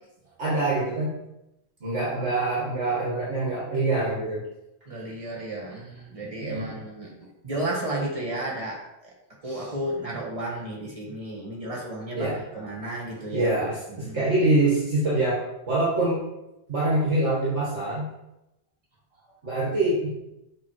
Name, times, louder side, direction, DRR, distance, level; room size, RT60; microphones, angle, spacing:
voice 1, 0.4-1.2 1.8-4.4 6.4-6.7 12.1-12.6 13.3-16.2 16.7-18.1 19.4-20.1, right 2 dB, 70° right, -7 dB, 2.0 m, -25 dB
voice 2, 4.9-7.1 7.4-9.1 9.4-12.3 12.5-13.6 13.9-14.3, right 1 dB, 30° right, -3 dB, 1.5 m, -33 dB
7.1 x 3.3 x 4.6 m, 0.90 s
omnidirectional pair, 1.2 m